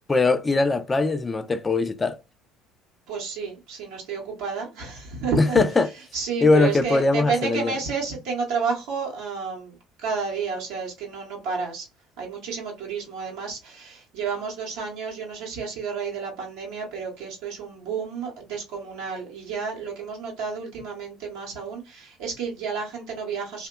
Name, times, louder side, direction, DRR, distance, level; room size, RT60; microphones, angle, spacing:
voice 1, 0.1-2.2 5.4-5.9 6.4-7.7, left 3 dB, 20° left, 0.4 m, -21 dB
voice 2, 3.1-5.6 6.1-11.9 12.2-23.7, right 5 dB, 65° right, 0.7 m, -31 dB
2.7 x 2.1 x 2.2 m
figure-of-eight pair, 60°, 0 cm